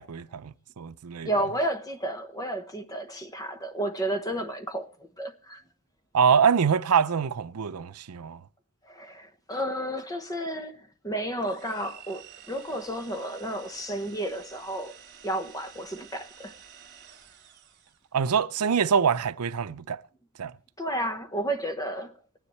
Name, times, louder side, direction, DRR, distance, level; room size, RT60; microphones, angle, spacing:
voice 1, 0.0-1.3 6.1-8.4 18.1-20.0 20.4-20.5, right 6 dB, 85° right, 0.6 m, -24 dB
voice 2, 1.2-4.9 5.2-5.6 8.9-14.9 15.2-16.5 20.8-22.1, right 1 dB, 15° left, 1.0 m, -32 dB
sound 1, 11.4-18.1, right 8 dB, 50° right, 2.5 m, -50 dB
25.0 x 9.9 x 3.2 m
head